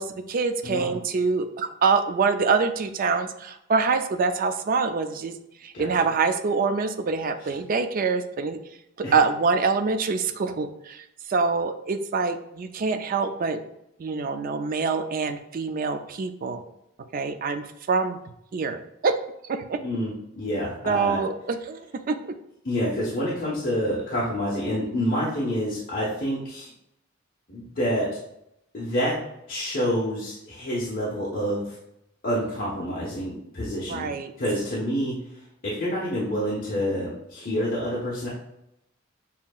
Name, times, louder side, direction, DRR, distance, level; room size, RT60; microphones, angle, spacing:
voice 1, 0.0-5.3 5.6-8.6 9.1-13.6 14.0-16.6 17.1-18.2 18.5-19.1 19.5-19.8 20.9-22.3 33.9-34.3, right 4 dB, 45° right, 8 dB, 0.4 m, -25 dB
voice 2, 0.6-0.9 5.7-5.9 9.0-9.1 19.8-21.2 22.6-26.7 27.5-28.1 28.7-29.2 29.5-31.8 32.2-34.1 34.4-35.1 35.6-38.3, equal, 45° left, -7 dB, 1.0 m, -27 dB
7.2 x 2.8 x 2.3 m, 0.81 s
head